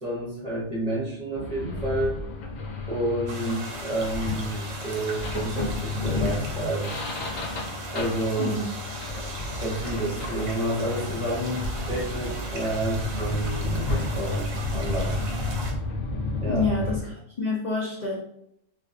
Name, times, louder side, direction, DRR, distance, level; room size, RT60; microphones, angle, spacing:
voice 1, 0.0-2.2 2.9-6.9 7.9-8.6 9.5-15.2 16.4-16.7, right 1 dB, 35° right, -6 dB, 0.8 m, -30 dB
sound 1, 1.4-17.0, left 3 dB, 85° left, 1.0 m, -31 dB
sound 2, 3.3-15.7, right 2 dB, 70° right, 0.9 m, -38 dB
voice 2, 16.4-18.2, left 3 dB, 50° left, -7 dB, 0.5 m, -28 dB
2.5 x 2.3 x 2.4 m, 0.74 s
omnidirectional pair, 1.3 m